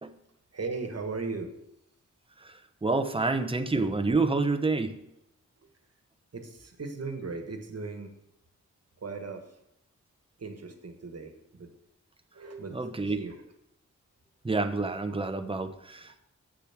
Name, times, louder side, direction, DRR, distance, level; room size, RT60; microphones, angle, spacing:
voice 1, 0.5-1.5 6.3-8.1 9.0-9.4 10.4-11.7 12.3-13.4, right 4 dB, 55° right, 5 dB, 1.5 m, -37 dB
voice 2, 2.4-5.0 12.7-13.2 14.4-16.2, right 3 dB, 20° right, 7 dB, 0.9 m, -28 dB
7.9 x 6.9 x 5.9 m, 0.82 s
wide cardioid pair, 75°, 29 cm